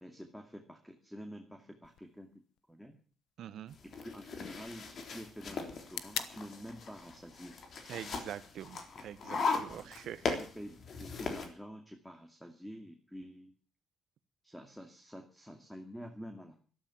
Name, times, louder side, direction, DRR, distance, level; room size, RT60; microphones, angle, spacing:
voice 1, 0.0-2.3 2.7-3.0 4.0-7.6 9.7-9.9 10.4-13.5 14.4-16.6, equal, ahead, 5 dB, 2.5 m, -48 dB
sound 1, 1.8-9.8, left 11 dB, 85° left, 1.1 m, -49 dB
voice 2, 3.4-3.7 7.9-10.4, right 10 dB, 75° right, 14 dB, 1.2 m, -44 dB
sound 2, 3.7-11.5, left 4 dB, 55° left, 3.4 m, -39 dB
13.0 x 12.5 x 7.2 m, 0.42 s
cardioid pair, 90°, 0 cm